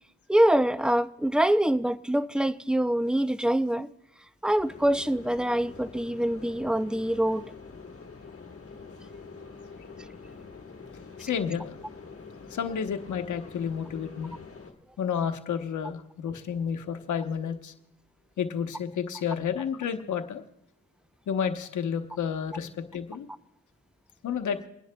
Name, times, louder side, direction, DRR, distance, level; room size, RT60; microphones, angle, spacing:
voice 1, 0.3-3.9 4.4-7.4, right 1 dB, 5° right, 0.4 m, -24 dB
sound 1, 4.6-14.7, left 4 dB, 50° left, 1.5 m, -46 dB
voice 2, 11.2-11.7 12.5-14.3 15.0-17.7 18.4-20.4 21.3-23.3 24.2-24.6, left 7 dB, 75° left, 0.9 m, -31 dB
29.5 x 10.5 x 2.2 m
cardioid pair, 60°, 30 cm